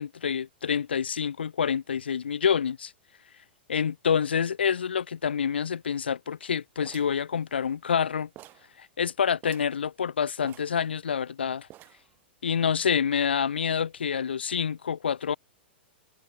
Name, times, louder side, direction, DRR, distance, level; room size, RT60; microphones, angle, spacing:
voice 1, 0.0-2.9 3.7-8.3 8.8-11.7 12.4-15.4, left 7 dB, 70° left, 1.2 m, -27 dB
sound 1, 6.8-8.0 8.4-8.7 9.0-9.1 9.4-9.8 10.4-11.3 11.7-12.2, right 16 dB, 35° right, 5.8 m, -50 dB
figure-of-eight pair, 100°, 6 cm